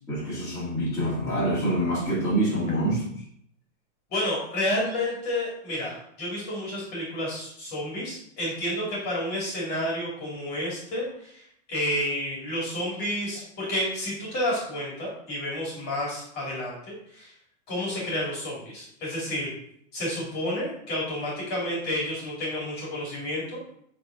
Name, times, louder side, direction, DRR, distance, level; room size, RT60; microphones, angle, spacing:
voice 1, 0.1-3.0, right 1 dB, 10° left, -11 dB, 2.2 m, -26 dB
voice 2, 4.1-17.3 17.7-19.5 19.9-23.6, left 1 dB, 25° left, -5 dB, 2.3 m, -30 dB
7.9 x 3.8 x 3.7 m, 0.68 s
supercardioid pair, 170°, 36 cm